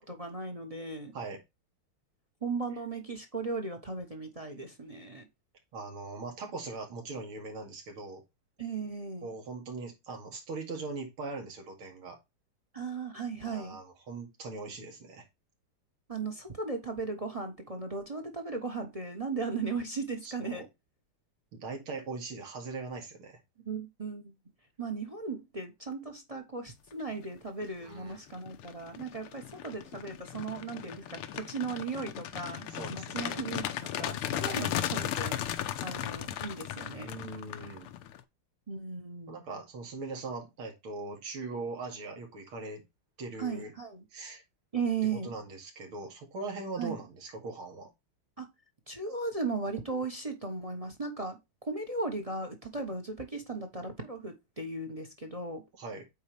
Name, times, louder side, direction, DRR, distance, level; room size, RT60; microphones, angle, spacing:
voice 1, 0.1-1.1 2.4-5.3 8.6-9.3 12.7-13.8 16.1-20.7 23.6-24.3 24.8-35.4 35.8-37.1 38.7-39.4 43.4-44.0 44.7-45.3 46.8-46.9 48.4-48.5 48.9-51.4 51.6-55.6, right 4 dB, 25° right, 0.8 m, -36 dB
voice 2, 5.7-8.2 9.2-12.2 13.4-15.2 20.2-20.7 21.5-23.4 27.8-28.2 32.7-33.4 34.4-34.7 37.0-37.9 39.3-42.8 43.2-43.7 44.1-44.4 45.0-47.9 55.8-56.1, right 3 dB, 75° right, 2.9 m, -40 dB
sound 1, 27.4-27.7 28.1-38.2, left 11 dB, 85° left, 1.7 m, -36 dB
8.4 x 4.5 x 3.3 m
omnidirectional pair, 2.4 m